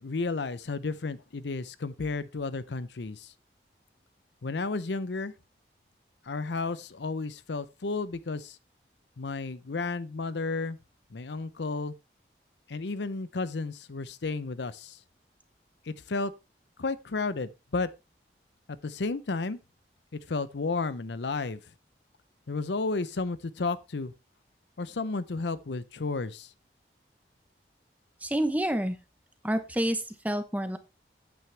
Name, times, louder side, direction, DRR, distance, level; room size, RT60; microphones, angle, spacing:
voice 1, 0.0-3.3 4.4-5.3 6.3-8.6 9.2-10.8 11.1-11.9 12.7-15.0 15.9-16.3 16.8-17.9 18.8-19.6 20.1-21.6 22.5-24.1 24.8-26.5, left 3 dB, 80° left, 0.7 m, -32 dB
voice 2, 28.2-29.0 29.4-30.8, right 1 dB, 10° right, 1.0 m, -28 dB
9.2 x 8.8 x 3.3 m
head